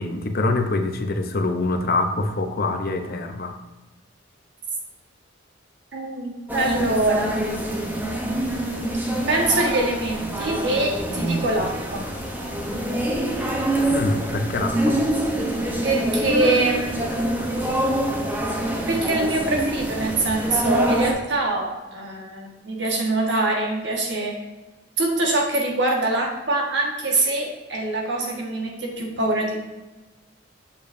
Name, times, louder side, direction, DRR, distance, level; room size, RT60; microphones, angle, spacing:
voice 1, 0.0-3.5 13.9-15.0, left 2 dB, 50° left, 6 dB, 0.7 m, -25 dB
voice 2, 5.9-7.5 8.4-9.0 9.3-12.1 15.8-17.2 18.5-24.4 25.0-29.6, right 2 dB, 65° right, 0 dB, 1.5 m, -24 dB
sound 1, 6.5-21.1, right 1 dB, 10° right, 0.8 m, -25 dB
7.0 x 6.8 x 2.6 m, 1.1 s
head